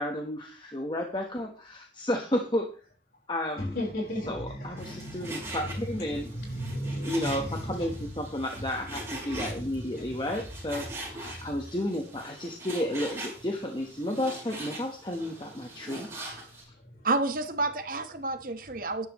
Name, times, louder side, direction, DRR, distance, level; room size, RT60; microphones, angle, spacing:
voice 1, 0.0-2.7 3.3-3.8 4.3-6.3 7.0-10.9 11.1-16.1 16.5-16.7, left 1 dB, 25° left, 1.2 m, -32 dB
voice 2, 3.7-5.5 6.1-7.9 9.5-9.6 9.9-10.1 11.4-11.5, equal, 55° left, 4.7 m, -35 dB
Frying (food), 4.8-16.6, right 1 dB, 15° right, 5.5 m, -42 dB
voice 3, 17.0-19.1, right 3 dB, 50° right, 1.2 m, -29 dB
12.5 x 10.5 x 3.1 m
head